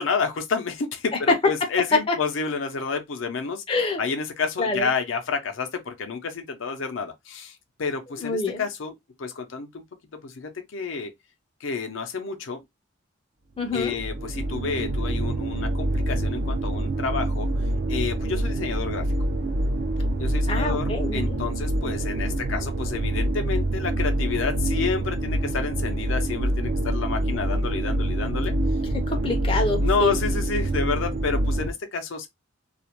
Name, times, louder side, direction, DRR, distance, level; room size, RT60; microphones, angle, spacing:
voice 1, 0.0-3.6 4.0-9.8 10.2-11.1 11.6-12.6 13.7-17.5 17.9-19.1 20.2-28.5 29.8-32.3, left 5 dB, 80° left, 0.5 m, -29 dB
voice 2, 3.7-4.0 4.6-4.9 8.2-8.6 13.6-13.9 20.5-21.4 28.9-30.1, left 3 dB, 25° left, 0.5 m, -26 dB
sound 1, 13.7-31.7, right 1 dB, 50° right, 0.3 m, -26 dB
2.4 x 2.0 x 2.8 m
head